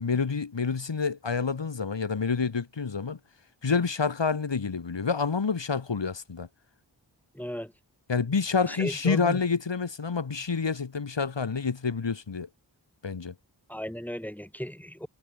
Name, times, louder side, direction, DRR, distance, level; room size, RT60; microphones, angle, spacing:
voice 1, 0.0-3.2 3.6-6.5 8.1-12.5 13.0-13.3, left 5 dB, 80° left, 1.8 m, -28 dB
voice 2, 7.3-7.7 8.7-9.4 13.7-15.1, equal, 5° left, 3.9 m, -35 dB
wide cardioid pair, 50°, 43 cm